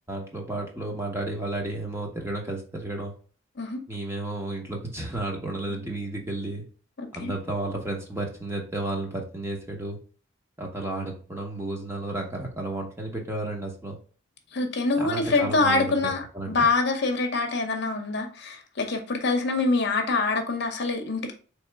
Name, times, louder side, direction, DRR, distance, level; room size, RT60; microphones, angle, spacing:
voice 1, 0.1-3.1 3.9-6.6 7.1-10.0 10.6-14.0 15.0-16.7, right 2 dB, 15° right, 1 dB, 0.8 m, -32 dB
voice 2, 7.0-7.3 14.5-21.3, left 3 dB, 55° left, 4 dB, 0.8 m, -25 dB
4.1 x 3.2 x 3.4 m, 0.40 s
head